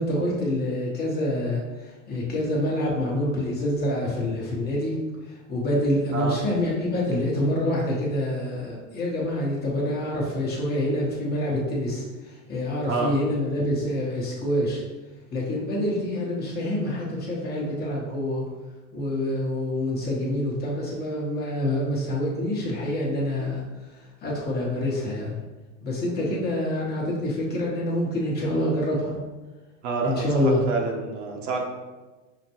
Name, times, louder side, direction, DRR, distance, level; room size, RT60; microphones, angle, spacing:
voice 1, 0.0-1.6 2.1-4.9 5.5-14.8 15.3-18.4 18.9-23.6 24.2-25.4 25.8-29.1 30.0-30.6, left 1 dB, 25° left, -3 dB, 1.0 m, -26 dB
voice 2, 29.8-31.6, right 4 dB, 75° right, 1 dB, 0.9 m, -28 dB
5.6 x 2.2 x 2.9 m, 1.2 s
supercardioid pair, 125°, 38 cm